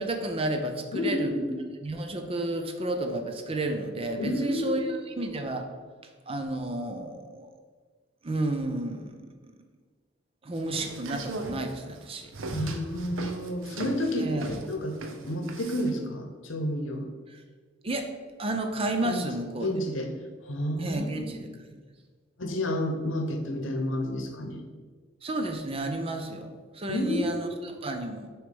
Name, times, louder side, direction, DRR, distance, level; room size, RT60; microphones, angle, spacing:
voice 1, 0.0-1.4 1.8-5.7 6.3-7.5 8.2-9.2 10.4-12.3 14.2-14.4 17.3-17.4 17.8-18.1 18.4-19.7 20.8-21.5 25.2-28.3, right 2 dB, 30° right, 5 dB, 0.6 m, -31 dB
voice 2, 0.9-1.5 4.2-4.9 12.5-14.3 14.7-15.0 15.2-17.1 19.0-19.2 19.6-20.1 20.4-21.2 22.4-24.6 26.9-27.7, left 1 dB, 75° left, 4 dB, 0.9 m, -30 dB
sound 1, 10.6-16.0, right 2 dB, 75° right, 0.7 m, -38 dB
6.4 x 3.2 x 5.1 m, 1.5 s
head